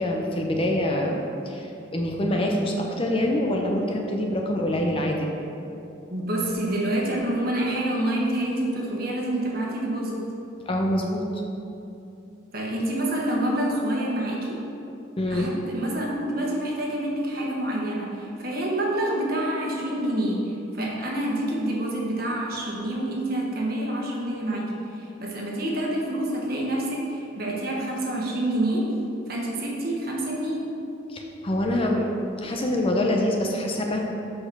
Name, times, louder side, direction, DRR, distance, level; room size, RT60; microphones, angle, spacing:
voice 1, 0.0-5.3 10.7-11.2 15.2-15.5 31.1-32.1 32.4-34.0, left 1 dB, 30° left, 1 dB, 0.6 m, -25 dB
voice 2, 6.1-10.2 12.5-14.6 15.3-28.9 29.3-30.7, right 1 dB, 50° right, -2 dB, 1.3 m, -27 dB
6.2 x 5.1 x 6.1 m, 2.8 s
head